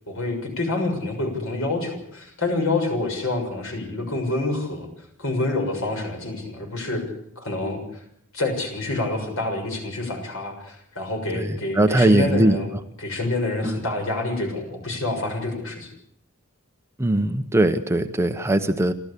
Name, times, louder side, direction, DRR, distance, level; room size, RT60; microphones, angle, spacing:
voice 1, 0.1-4.9 5.2-7.0 7.3-8.0 8.3-12.7 13.0-15.9, left 2 dB, 65° left, 4 dB, 6.7 m, -27 dB
voice 2, 11.3-12.6 13.6-13.8 17.0-18.9, right 1 dB, 10° right, 8 dB, 0.9 m, -20 dB
29.0 x 13.5 x 8.4 m, 0.72 s
head